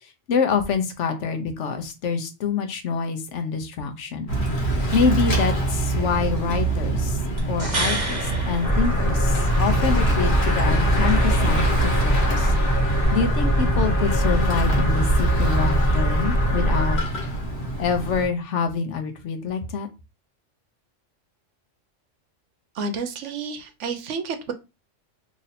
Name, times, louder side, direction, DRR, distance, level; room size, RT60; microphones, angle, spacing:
voice 1, 0.0-4.3 4.6-7.2 7.5-12.5 12.8-17.0 17.8-19.9, left 6 dB, 70° left, 6 dB, 1.0 m, -26 dB
Bicycle / Mechanisms, 4.3-18.3, right 1 dB, 55° left, 1.3 m, -27 dB
sound 1, 7.4-9.6 13.0-13.1, right 2 dB, 30° right, 1.4 m, -30 dB
sound 2, 8.6-17.0, right 1 dB, 5° left, 1.0 m, -21 dB
voice 2, 22.7-24.5, right 4 dB, 75° right, 8 dB, 0.9 m, -30 dB
3.0 x 2.6 x 4.1 m, 0.27 s
omnidirectional pair, 1.3 m